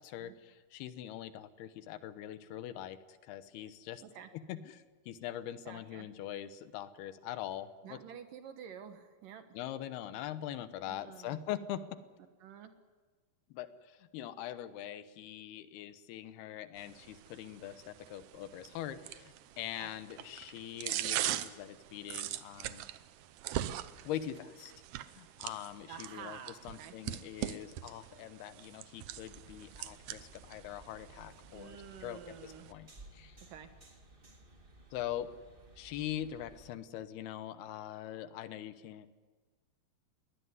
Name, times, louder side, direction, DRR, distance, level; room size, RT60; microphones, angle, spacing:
voice 1, 0.0-4.0 4.3-8.0 9.5-12.0 13.5-22.9 24.0-24.7 25.2-26.4 26.6-33.4 34.9-35.3 35.8-39.1, left 11 dB, 80° left, 12 dB, 2.9 m, -43 dB
voice 2, 5.7-6.1 7.8-9.5 10.8-11.4 12.4-12.7 19.8-19.9 25.9-26.9 31.5-32.7 33.4-33.7, right 8 dB, 65° right, 8 dB, 2.7 m, -49 dB
sound 1, 16.8-32.7, right 13 dB, 90° right, 1.7 m, -42 dB
sound 2, 29.1-36.7, right 1 dB, 30° right, 0.9 m, -57 dB
22.0 x 18.5 x 9.6 m, 1.4 s
omnidirectional pair, 4.5 m